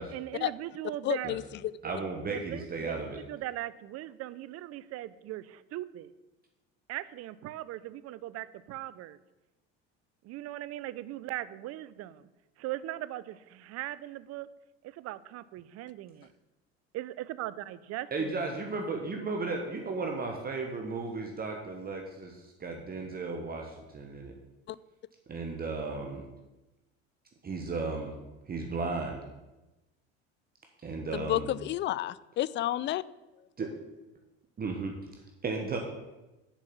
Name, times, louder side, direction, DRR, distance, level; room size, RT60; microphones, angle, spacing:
voice 1, 0.1-1.3 1.8-1.9 2.3-6.1 6.9-9.2 10.2-12.3 12.6-14.5 14.8-16.3 16.9-18.4, right 15 dB, 50° right, 17 dB, 0.6 m, -39 dB
voice 2, 1.0-1.4 24.7-24.8 31.1-33.0, left 13 dB, 35° left, 19 dB, 0.4 m, -30 dB
voice 3, 1.8-3.2 18.1-24.3 25.3-26.2 27.4-28.2 28.5-29.2 30.8-31.5 33.6-33.7 34.6-34.9 35.4-35.8, right 3 dB, 30° right, 2 dB, 1.3 m, -35 dB
7.2 x 5.3 x 7.0 m, 1.0 s
supercardioid pair, 85°, 31 cm